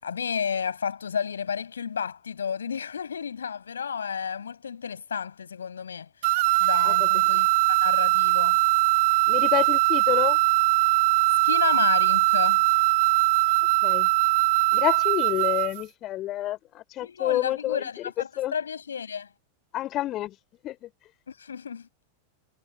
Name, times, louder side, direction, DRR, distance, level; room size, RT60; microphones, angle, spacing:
voice 1, 0.0-6.1 6.6-8.6 11.4-12.6 17.0-19.3 21.3-21.9, left 7 dB, 70° left, 6.8 m, -32 dB
sound 1, 6.2-15.8, right 22 dB, 50° right, 0.4 m, -21 dB
voice 2, 9.3-10.4 13.8-14.1 14.7-17.8 18.4-18.5 19.7-20.3 20.6-20.9, left 14 dB, 35° left, 4.3 m, -28 dB
figure-of-eight pair, 90°, 0 cm